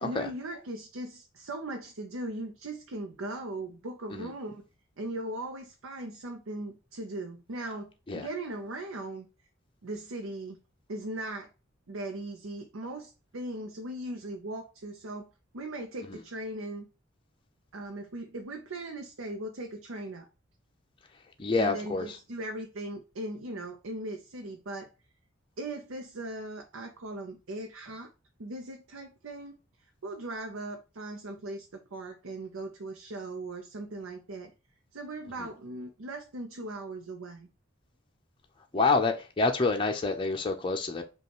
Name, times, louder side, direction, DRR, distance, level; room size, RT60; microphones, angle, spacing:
voice 1, 0.0-4.6 5.0-9.3 9.8-10.6 10.9-11.5 11.9-15.3 15.5-16.9 17.7-20.3 21.6-24.9 25.6-28.1 28.4-29.6 30.0-34.5 34.9-37.5, right 1 dB, 85° right, 0.7 m, -39 dB
voice 2, 21.4-22.1 35.4-35.5 38.7-41.0, left 3 dB, 25° left, 0.5 m, -27 dB
5.3 x 2.4 x 2.9 m
head